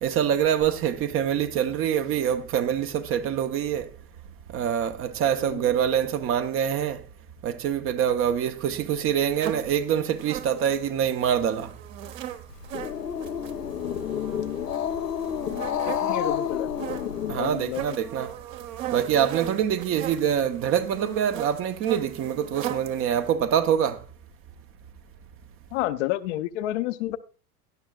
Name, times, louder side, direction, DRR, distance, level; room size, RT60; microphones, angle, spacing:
voice 1, 0.0-3.9 4.5-7.0 7.4-11.7 17.3-18.3 18.9-24.0, right 9 dB, 30° right, 0.9 m, -25 dB
sound 1, 9.4-23.3, right 11 dB, 55° right, 1.5 m, -38 dB
Growling, 12.5-17.9, left 8 dB, 80° left, 0.9 m, -30 dB
voice 2, 15.8-16.7 17.4-17.8 25.7-27.2, left 15 dB, 50° left, 0.8 m, -29 dB
17.5 x 11.5 x 2.4 m
figure-of-eight pair, 90°, 47 cm